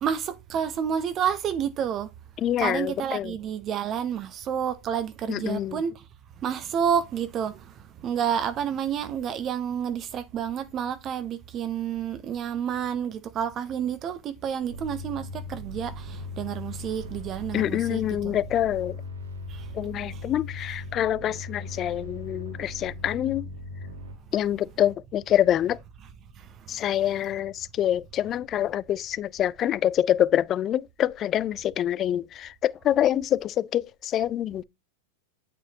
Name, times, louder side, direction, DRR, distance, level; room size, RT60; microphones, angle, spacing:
voice 1, 0.0-2.1 2.6-5.9 6.4-7.6 8.0-18.4 19.5-19.6, right 8 dB, 35° right, 0.8 m, -29 dB
voice 2, 2.4-3.3 5.3-5.8 17.5-19.0 19.8-23.5 24.3-25.8 26.7-34.6, left 11 dB, 35° left, 0.4 m, -26 dB
sound 1, 14.7-24.1, left 2 dB, 90° right, 1.9 m, -38 dB
8.7 x 5.0 x 2.8 m
hypercardioid pair, 105°, 0 cm